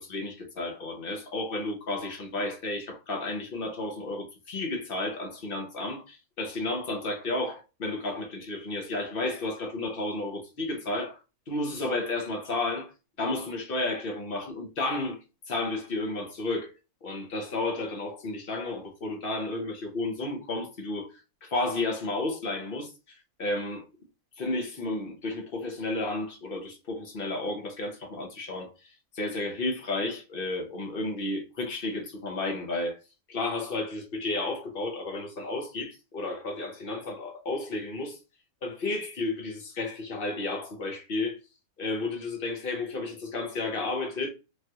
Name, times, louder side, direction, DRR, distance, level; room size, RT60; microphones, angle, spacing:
voice 1, 0.0-11.2 11.5-12.9 13.2-15.2 15.5-16.7 17.0-23.9 24.4-33.0 33.3-38.2 38.6-41.4 41.8-44.3, left 2 dB, 50° left, 0.8 m, -32 dB
3.3 x 2.4 x 2.7 m
omnidirectional pair, 1.6 m